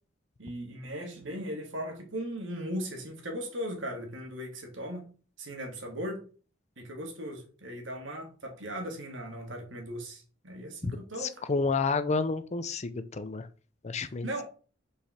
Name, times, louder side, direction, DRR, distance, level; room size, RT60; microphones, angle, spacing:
voice 1, 0.4-5.1 5.4-6.2 6.8-11.3 13.9-14.4, equal, 70° right, 3 dB, 2.2 m, -38 dB
voice 2, 11.2-13.5 13.8-14.3, left 4 dB, 35° left, 12 dB, 0.6 m, -30 dB
5.8 x 4.9 x 5.8 m, 0.39 s
head